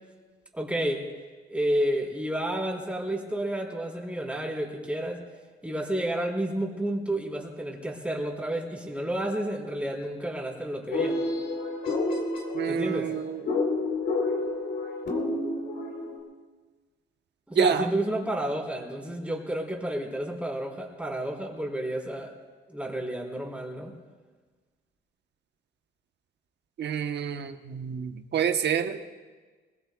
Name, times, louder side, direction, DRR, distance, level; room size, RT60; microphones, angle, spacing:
voice 1, 0.5-1.1 1.5-5.2 5.6-11.2 12.7-13.1 17.5-22.4 22.7-23.9, right 1 dB, 5° right, -2 dB, 4.0 m, -31 dB
sound 1, 10.9-16.2, left 2 dB, 70° left, 3.7 m, -29 dB
voice 2, 12.5-13.4 17.6-17.9 26.8-29.0, right 7 dB, 60° right, 7 dB, 1.1 m, -27 dB
22.0 x 21.5 x 2.4 m, 1.4 s
cardioid pair, 90°, 20 cm